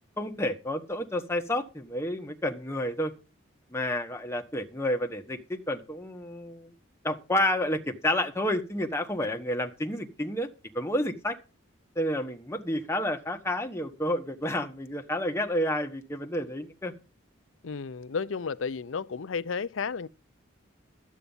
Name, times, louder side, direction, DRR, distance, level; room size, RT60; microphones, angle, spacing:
voice 1, 0.2-3.1 3.7-6.7 7.0-10.5 10.7-11.4 11.9-16.9, left 1 dB, 15° left, 1.3 m, -30 dB
voice 2, 17.6-20.1, left 5 dB, 75° left, 0.6 m, -32 dB
12.0 x 8.5 x 5.5 m
head